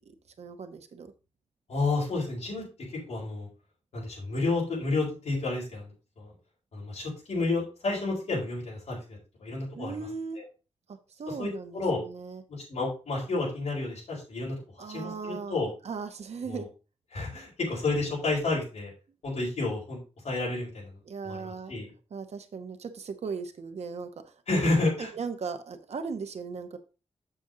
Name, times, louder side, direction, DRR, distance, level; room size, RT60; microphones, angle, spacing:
voice 1, 0.1-1.1 9.7-10.4 10.9-12.4 14.8-15.6 15.8-16.7 21.0-21.7 22.1-24.7 25.0-26.8, right 5 dB, 65° right, 1.0 m, -38 dB
voice 2, 1.7-2.6 3.1-3.5 3.9-6.3 6.7-10.1 11.4-12.0 12.5-15.7 16.5-16.7 17.1-18.9 19.2-20.0 20.2-20.9 21.2-21.9 24.5-25.1, left 3 dB, 70° left, 4.7 m, -30 dB
7.5 x 7.0 x 3.8 m
wide cardioid pair, 165°, 12 cm